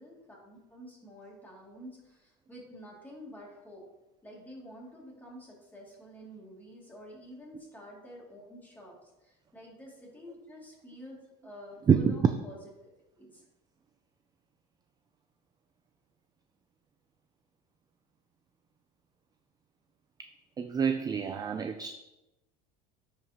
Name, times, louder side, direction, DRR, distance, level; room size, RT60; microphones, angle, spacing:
voice 1, 0.0-3.9 4.2-9.0 9.2-11.2 11.4-12.6 13.2-13.4, equal, 10° left, -4 dB, 2.5 m, -49 dB
voice 2, 11.9-12.3 20.2-20.3 20.6-21.9, right 6 dB, 20° right, 9 dB, 0.3 m, -26 dB
10.0 x 4.9 x 2.9 m, 0.97 s
supercardioid pair, 125°, 21 cm